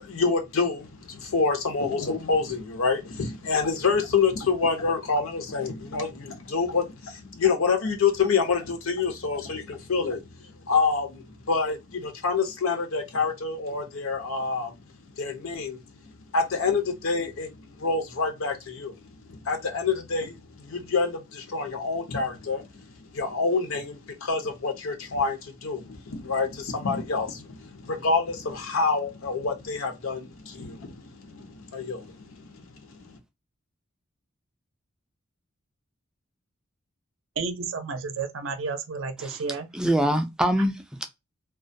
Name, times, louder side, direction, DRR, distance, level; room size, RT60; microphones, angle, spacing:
voice 1, 0.0-14.7 15.2-15.8 16.3-33.2, left 4 dB, 80° left, 0.6 m, -27 dB
voice 2, 37.4-39.7, right 4 dB, 70° right, 0.5 m, -31 dB
voice 3, 39.7-41.1, equal, 5° right, 0.3 m, -24 dB
2.3 x 2.1 x 2.5 m
head